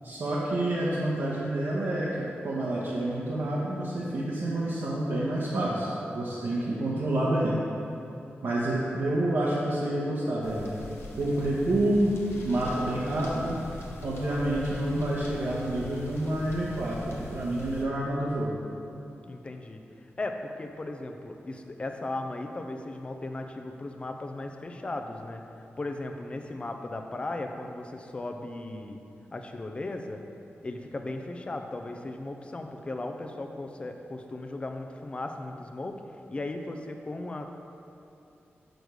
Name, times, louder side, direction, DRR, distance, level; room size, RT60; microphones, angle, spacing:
voice 1, 0.0-2.1 2.4-5.9 6.1-7.5 8.4-10.7 11.2-12.1 12.4-13.8 14.0-18.5, right 1 dB, 70° right, -8 dB, 1.1 m, -28 dB
voice 2, 6.8-7.1 19.3-19.8 20.2-29.0 29.3-30.2 30.6-36.0 36.3-37.5, left 2 dB, 25° left, 5 dB, 0.5 m, -37 dB
sound 1, 10.4-17.8, left 1 dB, 70° left, 1.1 m, -42 dB
6.4 x 5.2 x 6.3 m, 2.8 s
wide cardioid pair, 170°, 4 cm